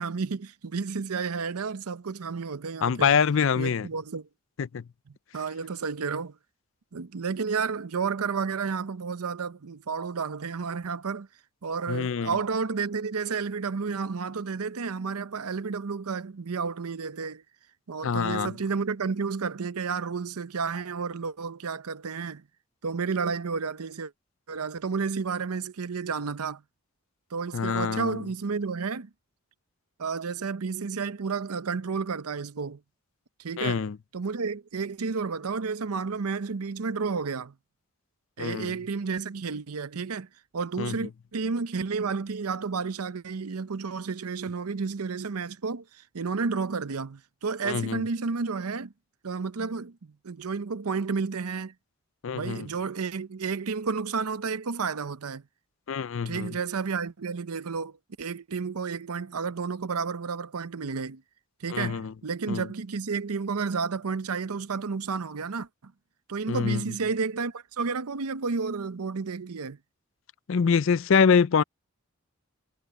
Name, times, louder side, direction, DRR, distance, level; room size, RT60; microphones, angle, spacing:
voice 1, 0.0-3.2 3.6-4.3 5.3-6.4 6.9-11.3 11.6-17.4 17.9-22.4 22.8-24.1 24.5-26.6 27.3-29.1 30.0-32.8 33.4-33.8 34.1-37.5 38.4-40.3 40.5-48.9 49.2-51.7 52.3-55.4 56.3-61.2 61.6-65.9 66.3-69.8, right 5 dB, 85° right, 0.7 m, -31 dB
voice 2, 2.8-3.9 4.6-4.8 11.9-12.4 18.0-18.6 27.5-28.2 33.6-34.0 38.4-38.7 40.8-41.0 47.6-48.0 52.2-52.7 55.9-56.6 61.7-62.1 62.5-62.7 66.5-66.8 70.5-71.6, left 6 dB, 60° left, 0.4 m, -25 dB
head